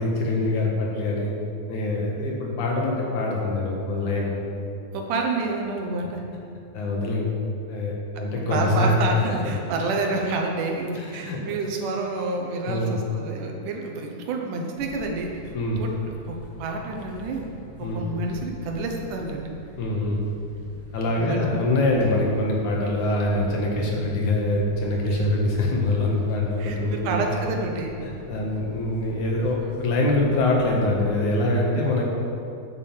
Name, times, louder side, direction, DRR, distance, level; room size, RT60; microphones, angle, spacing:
voice 1, 0.0-1.3 1.7-4.4 6.7-7.3 7.7-8.9 9.3-9.5 11.0-11.4 12.6-13.0 15.5-15.8 17.8-18.1 19.8-20.2 20.9-27.3 28.0-32.0, left 2 dB, 75° left, -2 dB, 3.1 m, -24 dB
voice 2, 4.9-6.2 8.4-15.9 16.3-16.4 16.6-17.4 17.8-19.5 21.2-21.6 25.1-25.2 26.6-27.9, right 3 dB, 85° right, 2 dB, 2.7 m, -29 dB
sound 1, 14.7-31.2, left 1 dB, 5° left, 1.3 m, -44 dB
9.2 x 6.8 x 7.3 m, 2.6 s
omnidirectional pair, 3.5 m